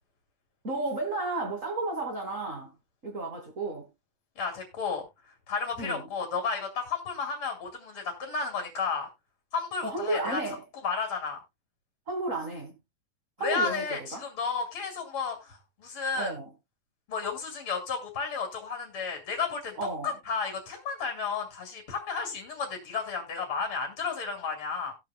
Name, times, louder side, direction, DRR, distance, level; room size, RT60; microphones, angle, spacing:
voice 1, 0.6-2.7 3.0-3.9 5.8-6.1 9.8-10.6 12.1-12.8 13.4-14.2 16.1-16.5 19.8-20.1, right 2 dB, 40° right, 1.1 m, -32 dB
voice 2, 4.4-5.0 5.5-9.1 9.5-10.4 10.8-11.4 13.4-16.3 17.1-19.8 20.0-24.9, left 5 dB, 40° left, 3.1 m, -32 dB
19.0 x 6.6 x 2.2 m
omnidirectional pair, 4.1 m